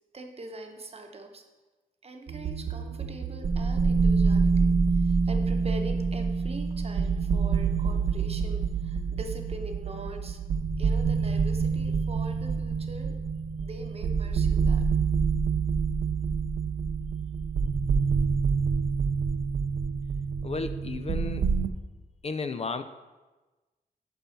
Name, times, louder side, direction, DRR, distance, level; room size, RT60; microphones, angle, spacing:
voice 1, 0.1-1.4 2.0-10.4 10.8-13.2 13.6-14.8, right 2 dB, 40° right, 4 dB, 0.9 m, -42 dB
sound 1, 2.3-21.7, right 5 dB, 70° right, 0.5 m, -27 dB
voice 2, 20.4-21.5 22.2-22.8, left 4 dB, 40° left, 10 dB, 0.4 m, -33 dB
7.0 x 5.4 x 5.8 m, 1.2 s
wide cardioid pair, 120°, 16 cm